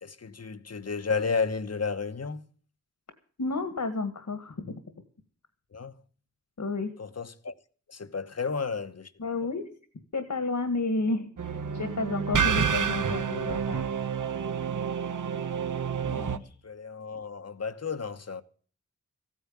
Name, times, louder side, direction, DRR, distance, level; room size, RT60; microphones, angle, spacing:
voice 1, 0.0-2.4 5.7-6.0 7.0-7.5 7.9-9.1 16.6-18.4, left 5 dB, 55° left, 1.1 m, -32 dB
voice 2, 3.4-4.8 6.6-6.9 9.2-9.7 10.1-11.3 11.7-13.9 16.1-16.6, left 3 dB, 70° left, 1.9 m, -31 dB
sound 1, 11.4-16.4, right 6 dB, 80° right, 1.1 m, -29 dB
15.5 x 9.4 x 7.3 m
wide cardioid pair, 85°, 30 cm